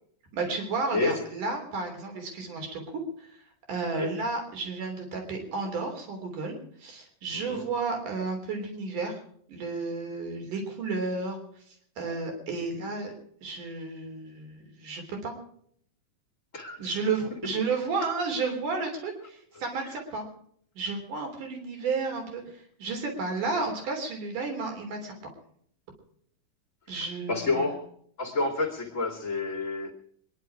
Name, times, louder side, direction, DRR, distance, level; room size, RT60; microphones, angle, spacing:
voice 1, 0.3-2.8 3.2-3.3 3.7-9.2 9.5-11.4 12.0-13.1 13.4-15.3 16.8-20.2 20.8-22.4 22.8-25.1 26.9-27.7, right 4 dB, 70° right, 3 dB, 4.9 m, -32 dB
voice 2, 0.9-1.2 3.9-4.1 7.3-7.6 16.5-17.0 19.8-19.9 26.9-27.9 28.2-29.9, left 3 dB, 25° left, 2 dB, 2.4 m, -30 dB
26.0 x 11.0 x 4.8 m, 0.63 s
omnidirectional pair, 3.8 m